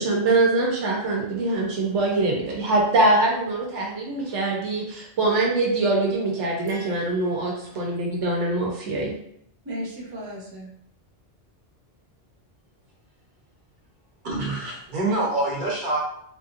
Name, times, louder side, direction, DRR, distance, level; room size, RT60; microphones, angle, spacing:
voice 1, 0.0-9.1, right 2 dB, 90° right, -2 dB, 1.2 m, -23 dB
voice 2, 6.7-8.0 9.6-10.7, equal, 20° right, -5 dB, 0.9 m, -38 dB
voice 3, 14.2-16.0, right 2 dB, 45° right, -3 dB, 1.0 m, -26 dB
3.5 x 2.7 x 2.5 m, 0.69 s
omnidirectional pair, 1.2 m